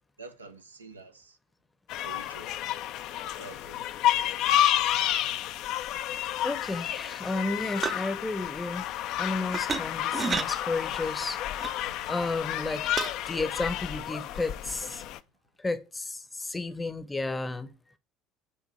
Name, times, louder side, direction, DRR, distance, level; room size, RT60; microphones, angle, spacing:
voice 1, 0.2-1.4 2.0-2.6 3.4-3.9 4.9-5.1 11.8-12.1 14.9-15.1, right 3 dB, 80° right, 0.5 m, -48 dB
sound 1, 1.9-15.2, left 12 dB, 50° left, 0.4 m, -30 dB
voice 2, 6.4-8.9 9.2-11.4 12.1-12.8 13.3-15.0 15.6-17.7, left 3 dB, 15° left, 0.7 m, -32 dB
sound 2, 7.8-8.1 9.5-9.8 10.1-10.5 11.6-11.8 13.0-13.1, right 5 dB, 30° right, 0.5 m, -30 dB
7.6 x 2.9 x 5.5 m
figure-of-eight pair, 60°, 0 cm